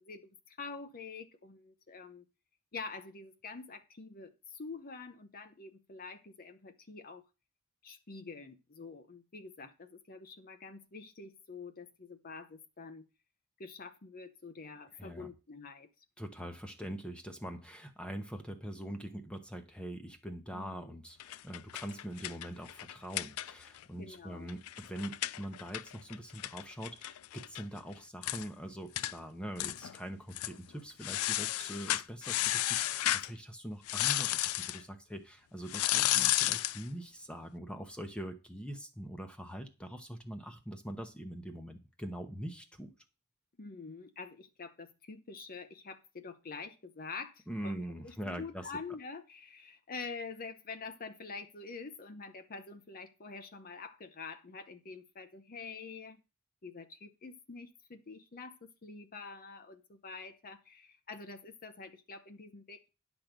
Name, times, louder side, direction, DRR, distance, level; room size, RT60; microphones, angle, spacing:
voice 1, 0.0-2.2 2.7-7.2 7.8-13.0 13.6-15.9 20.5-20.9 24.0-24.6 43.6-56.2 56.6-62.9, left 4 dB, 40° left, 8 dB, 0.8 m, -46 dB
voice 2, 15.0-15.3 16.2-42.9 47.5-48.7, equal, 5° left, 6 dB, 0.9 m, -43 dB
sound 1, 21.2-23.8 24.1-24.2 24.5-27.6 27.9-28.0 28.2-28.5 29.0-29.1 29.6-30.0 30.3-30.6 31.0-33.3 33.9-34.8 35.7-36.8, left 15 dB, 80° left, 0.4 m, -33 dB
10.5 x 6.1 x 5.1 m, 0.30 s
head